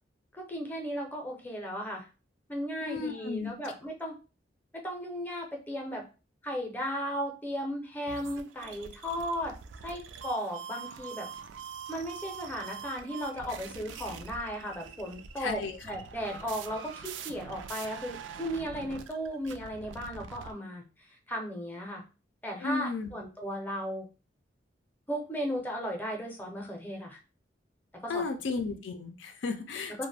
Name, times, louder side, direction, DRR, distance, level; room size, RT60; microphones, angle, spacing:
voice 1, 0.3-2.1 2.5-4.1 4.7-6.0 6.4-9.5 9.8-11.3 11.9-20.8 21.3-22.0 22.4-24.1 25.1-27.2 28.0-28.2 30.0-30.1, equal, 10° left, 1 dB, 0.5 m, -35 dB
voice 2, 2.8-3.5 15.4-15.8 22.6-23.1 28.1-30.1, left 4 dB, 85° left, 7 dB, 0.4 m, -34 dB
sound 1, 8.1-20.5, right 7 dB, 80° right, 0.3 m, -44 dB
2.4 x 2.1 x 3.2 m, 0.33 s
head